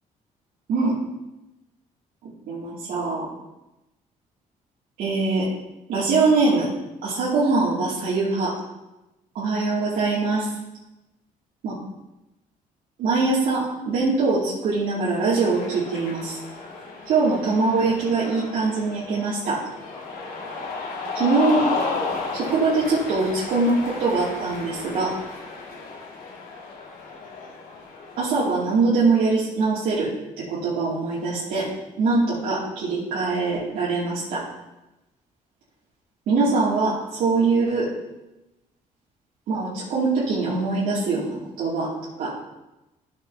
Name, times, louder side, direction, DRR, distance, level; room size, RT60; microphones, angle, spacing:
voice 1, 2.2-3.3 5.0-5.5 5.9-6.7 7.0-8.6 9.3-10.5 11.6-11.8 13.0-16.4 17.1-19.6 21.1-21.6 22.3-25.1 28.2-30.1 30.4-31.7 32.0-34.4 36.3-37.9 39.5-41.9 42.2-42.3, right 3 dB, 85° right, -9 dB, 2.6 m, -23 dB
Cheering, 15.2-28.6, left 3 dB, 80° left, 2.2 m, -33 dB
13.0 x 7.4 x 2.8 m, 0.96 s
cardioid pair, 130°, 15 cm